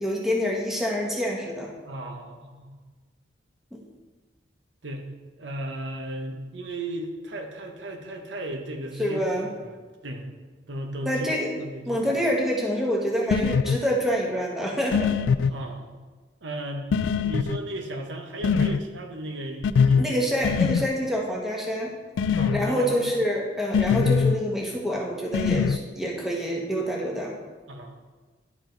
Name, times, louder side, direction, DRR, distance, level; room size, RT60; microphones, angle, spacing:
voice 1, 0.0-1.7 9.0-9.5 11.0-11.6 11.8-15.1 20.0-21.9 22.5-27.3, equal, ahead, -2 dB, 1.1 m, -26 dB
voice 2, 1.8-2.8 4.8-5.0 5.4-9.8 10.0-10.3 10.7-12.2 15.5-15.9 16.4-16.9 17.2-20.8 22.3-23.1 27.7-28.0, right 1 dB, 70° right, 3 dB, 1.0 m, -35 dB
sound 1, 13.3-13.8 14.9-15.5 16.9-17.6 18.4-18.8 19.6-20.0 20.4-20.9 22.2-22.7 23.7-24.4 25.3-25.8, left 6 dB, 80° left, 0.3 m, -22 dB
11.0 x 4.9 x 3.9 m, 1.3 s
head